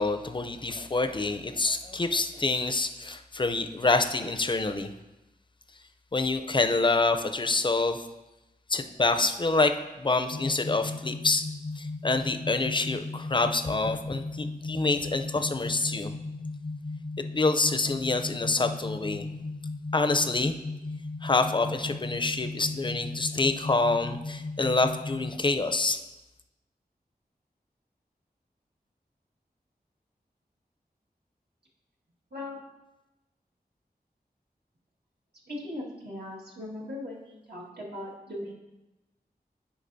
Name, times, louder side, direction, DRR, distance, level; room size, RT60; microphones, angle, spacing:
voice 1, 0.0-4.9 6.1-8.1 8.7-11.5 11.8-16.1 17.3-19.3 19.9-20.6 21.2-26.0, left 3 dB, 30° left, 7 dB, 0.4 m, -27 dB
sound 1, 10.3-25.3, left 3 dB, 80° left, 0.5 m, -36 dB
voice 2, 35.5-38.5, left 1 dB, 80° right, -6 dB, 1.7 m, -39 dB
10.0 x 4.9 x 2.6 m, 1.0 s
wide cardioid pair, 60°, 17 cm